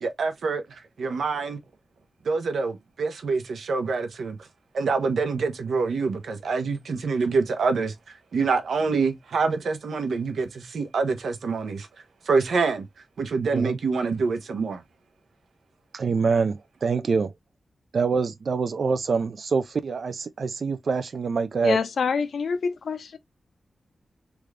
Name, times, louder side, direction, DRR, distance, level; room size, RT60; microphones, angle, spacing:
voice 1, 0.0-1.6 2.2-4.4 4.7-11.9 12.2-12.9 13.2-14.8, right 4 dB, 90° right, 0.8 m, -26 dB
voice 2, 15.9-17.3 17.9-21.8, right 5 dB, 65° right, 0.3 m, -25 dB
voice 3, 21.6-23.2, left 5 dB, 80° left, 0.6 m, -26 dB
3.4 x 2.4 x 3.2 m
wide cardioid pair, 115°, 0 cm